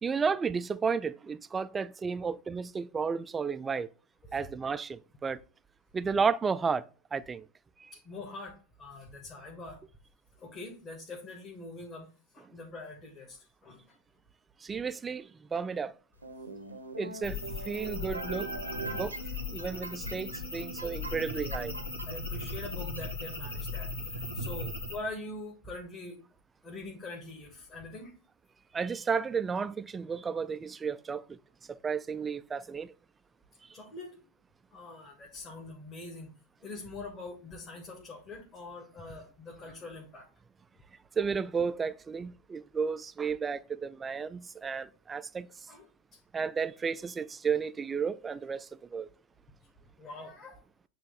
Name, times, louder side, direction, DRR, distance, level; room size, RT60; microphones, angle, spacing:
voice 1, 0.0-3.9 4.3-5.4 5.9-6.8 7.1-7.4 7.8-7.9 14.6-15.9 17.0-18.5 19.0-19.2 19.5-21.7 28.7-31.4 31.7-32.9 41.2-45.5 46.3-49.1, right 5 dB, 15° right, 0.4 m, -32 dB
voice 2, 7.9-9.8 10.3-12.1 12.3-14.0 22.0-26.2 26.6-28.1 33.7-34.1 34.7-36.3 36.6-40.3 44.8-44.9 45.7-45.9 46.1-46.2 50.0-50.6, left 2 dB, 25° left, 1.6 m, -44 dB
sound 1, 16.2-23.0, right 3 dB, 80° right, 0.9 m, -41 dB
sound 2, 17.2-25.0, left 3 dB, 70° left, 1.9 m, -38 dB
8.7 x 3.2 x 4.0 m
figure-of-eight pair, 90°, 0 cm